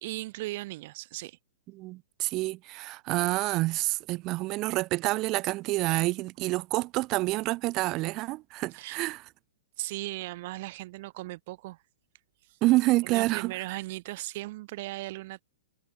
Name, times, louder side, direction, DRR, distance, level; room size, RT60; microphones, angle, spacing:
voice 1, 0.0-1.4 8.7-9.0 9.8-11.8 12.5-12.6 13.0-15.4, right 19 dB, 45° right, 2.0 m, -37 dB
voice 2, 1.7-9.2 12.6-13.5, right 20 dB, 30° right, 1.1 m, -28 dB
hypercardioid pair, 160°, 0 cm